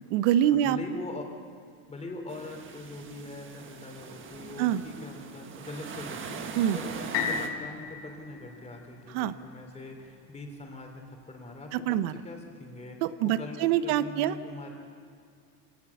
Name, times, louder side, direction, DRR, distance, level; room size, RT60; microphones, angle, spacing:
voice 1, 0.0-0.8 4.6-4.8 6.6-6.8 9.1-9.3 11.7-12.1 13.0-14.3, right 11 dB, 65° right, 13 dB, 1.0 m, -25 dB
voice 2, 0.5-1.3 1.9-14.7, left 2 dB, 15° left, 2 dB, 3.3 m, -42 dB
sound 1, 2.3-7.5, right 6 dB, 25° right, 1.6 m, -41 dB
sound 2, 7.1-11.1 11.7-11.8, left 7 dB, 60° left, 5.4 m, -36 dB
24.5 x 18.5 x 7.2 m, 2.3 s
supercardioid pair, 140°, 46 cm